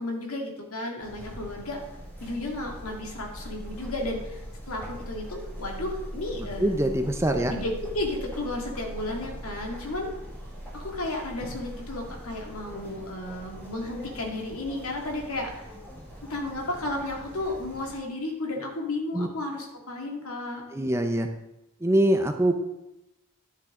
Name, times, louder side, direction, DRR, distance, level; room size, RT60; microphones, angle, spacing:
voice 1, 0.0-1.8 2.2-6.8 7.4-10.1 10.7-15.7 16.2-20.6, left 2 dB, 80° left, 1 dB, 2.0 m, -33 dB
sound 1, 1.0-17.9, equal, 10° left, 1.8 m, -41 dB
voice 2, 6.6-7.5 19.1-19.3 20.7-21.3 21.8-22.5, right 1 dB, 10° right, 6 dB, 0.5 m, -23 dB
10.5 x 7.3 x 3.7 m, 0.94 s
head